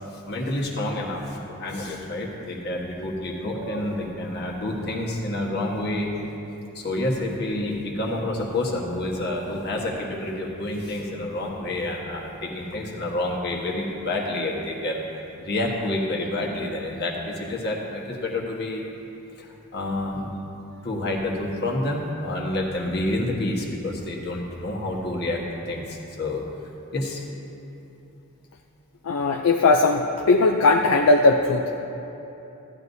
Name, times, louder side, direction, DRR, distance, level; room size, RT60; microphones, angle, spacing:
voice 1, 0.0-6.1 6.7-18.9 19.3-20.3 20.8-26.4 26.9-27.2, left 1 dB, 45° left, -1 dB, 1.3 m, -28 dB
voice 2, 29.0-31.8, left 3 dB, 65° left, 3 dB, 0.4 m, -19 dB
14.5 x 11.0 x 2.7 m, 3.0 s
head